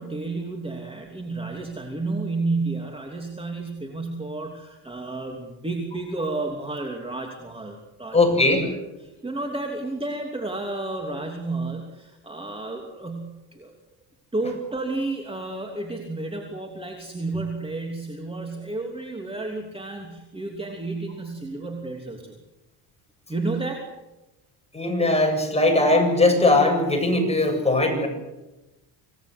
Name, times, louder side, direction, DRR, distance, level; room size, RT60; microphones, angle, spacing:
voice 1, 0.0-8.7 9.0-13.7 14.3-22.4 23.3-23.9, right 2 dB, 10° right, 2 dB, 3.1 m, -31 dB
voice 2, 8.1-8.6 24.7-28.1, left 2 dB, 15° left, 4 dB, 7.8 m, -19 dB
27.0 x 18.5 x 8.1 m, 1.0 s
cardioid pair, 115°, 46 cm